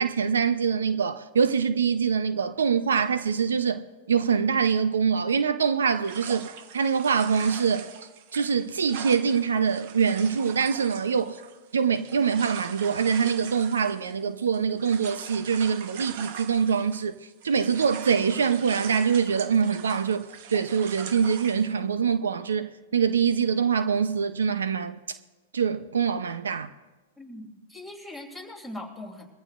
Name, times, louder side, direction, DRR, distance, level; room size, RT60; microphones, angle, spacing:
voice 1, 0.0-3.8 4.1-7.9 8.3-11.4 11.7-17.1 17.4-25.0 25.5-26.7, right 6 dB, 85° right, 0.6 m, -24 dB
sound 1, 6.0-17.1 17.4-21.7, right 8 dB, 55° right, 1.1 m, -42 dB
voice 2, 27.2-29.3, left 1 dB, 5° right, 2.9 m, -40 dB
22.5 x 15.0 x 2.5 m
hypercardioid pair, 115°, 0 cm